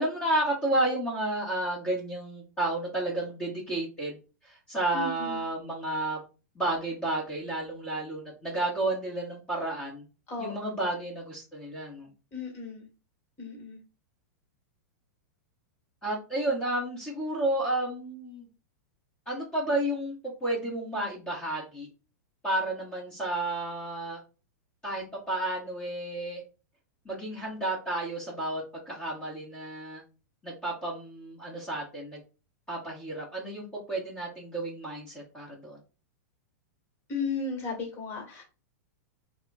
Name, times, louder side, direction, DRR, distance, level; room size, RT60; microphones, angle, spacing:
voice 1, 0.0-4.2 4.4-6.2 6.5-10.0 10.4-12.1 16.0-18.4 19.2-20.1 20.4-21.9 22.4-24.2 24.8-26.4 27.0-30.0 30.4-32.2 32.7-35.8, right 1 dB, 10° left, -6 dB, 1.6 m, -31 dB
voice 2, 4.9-5.4 10.3-10.7 12.3-12.8 13.4-13.8 37.1-38.4, left 4 dB, 30° left, 2 dB, 1.9 m, -35 dB
3.5 x 2.4 x 4.1 m, 0.32 s
hypercardioid pair, 130°, 9 cm